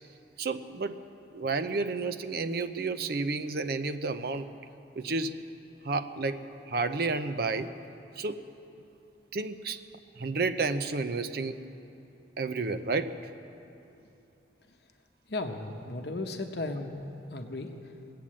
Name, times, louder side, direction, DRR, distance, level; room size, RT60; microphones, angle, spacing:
voice 1, 0.4-1.0 1.3-4.5 5.0-5.4 5.8-6.4 6.7-7.7 8.2-8.4 9.3-9.8 10.2-11.6 12.4-13.1, right 3 dB, 55° right, 9 dB, 0.6 m, -31 dB
voice 2, 15.3-16.9 17.3-17.7, left 2 dB, 60° left, 4 dB, 0.9 m, -35 dB
20.0 x 8.7 x 7.4 m, 2.8 s
head